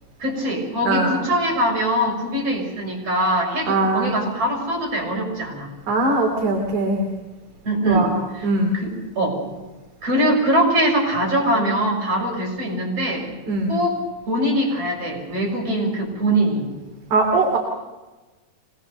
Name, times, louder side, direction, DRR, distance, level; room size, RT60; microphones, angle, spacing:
voice 1, 0.2-5.7 7.6-8.1 8.3-8.5 8.7-9.4 10.0-13.3 13.7-14.0 14.3-16.7, right 1 dB, 40° right, -2 dB, 7.4 m, -22 dB
voice 2, 3.7-4.1 5.9-7.1 7.9-8.1 8.4-8.7 13.5-13.7 17.1-17.6, right 2 dB, 55° right, 1 dB, 3.9 m, -20 dB
25.5 x 20.5 x 6.8 m, 1.2 s
omnidirectional pair, 4.3 m